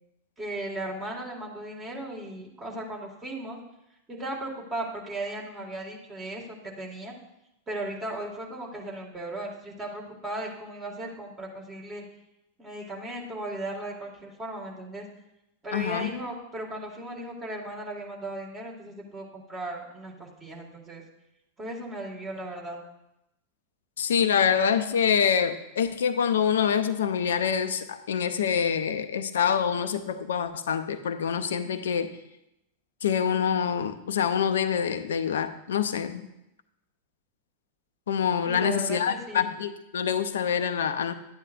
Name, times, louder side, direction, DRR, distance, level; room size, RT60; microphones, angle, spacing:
voice 1, 0.4-3.6 4.1-7.2 7.7-12.0 12.6-15.1 15.6-21.0 21.6-22.8 38.5-39.5, right 1 dB, 20° right, -2 dB, 2.3 m, -36 dB
voice 2, 15.7-16.1 24.0-32.1 33.0-36.3 38.1-41.1, left 7 dB, 65° left, 10 dB, 0.6 m, -26 dB
11.5 x 9.1 x 2.7 m, 0.87 s
figure-of-eight pair, 90°, 0 cm